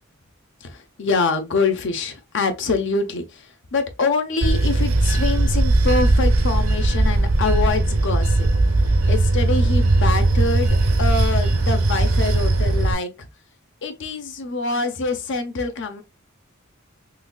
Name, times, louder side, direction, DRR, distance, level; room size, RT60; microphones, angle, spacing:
voice 1, 0.6-8.5 9.1-13.1 13.8-16.0, left 3 dB, 60° left, 0.6 m, -25 dB
Bell / Train, 4.4-12.9, right 2 dB, 75° right, 0.7 m, -18 dB
3.9 x 3.0 x 2.2 m
head